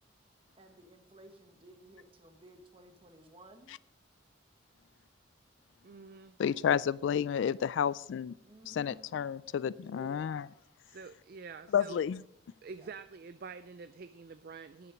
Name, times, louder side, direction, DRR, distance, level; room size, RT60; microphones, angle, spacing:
voice 1, 0.6-3.7 8.4-9.1 9.8-10.4 12.7-12.9, right 1 dB, 30° right, 6 dB, 1.2 m, -55 dB
voice 2, 5.8-6.4 10.8-12.0 12.6-14.9, right 5 dB, 50° right, 12 dB, 0.4 m, -47 dB
voice 3, 6.4-8.3 8.6-10.4 11.7-12.2, left 8 dB, 70° left, 19 dB, 0.3 m, -31 dB
10.0 x 9.0 x 5.1 m, 0.75 s
head